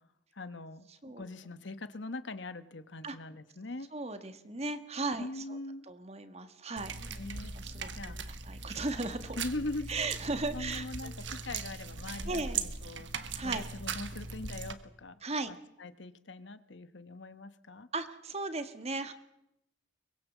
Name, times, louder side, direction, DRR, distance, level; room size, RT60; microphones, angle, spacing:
voice 1, 0.3-0.8 1.2-3.9 5.2-5.9 7.1-7.5 7.9-8.2 9.4-9.9 10.5-13.1 13.4-15.2 15.5-17.9, left 2 dB, 70° left, 12 dB, 1.2 m, -41 dB
voice 2, 3.9-5.6 5.9-7.2 7.5-9.4 9.9-11.1 12.2-12.6 13.3-13.6 15.2-15.5 17.9-19.1, right 3 dB, 35° right, 9 dB, 1.6 m, -37 dB
sound 1, 6.8-14.7, right 5 dB, 70° right, 1.5 m, -39 dB
23.5 x 21.0 x 7.3 m, 0.85 s
head